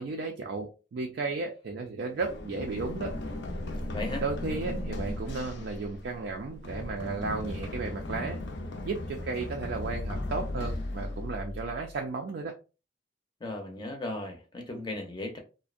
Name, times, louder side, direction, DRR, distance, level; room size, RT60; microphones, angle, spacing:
voice 1, 0.0-3.1 4.2-8.4 8.9-12.5, right 3 dB, 65° right, 0.4 m, -34 dB
Run, 2.2-11.9, left 1 dB, 70° left, 0.5 m, -36 dB
voice 2, 13.4-15.4, left 2 dB, 25° left, 0.6 m, -36 dB
2.5 x 2.1 x 2.4 m
head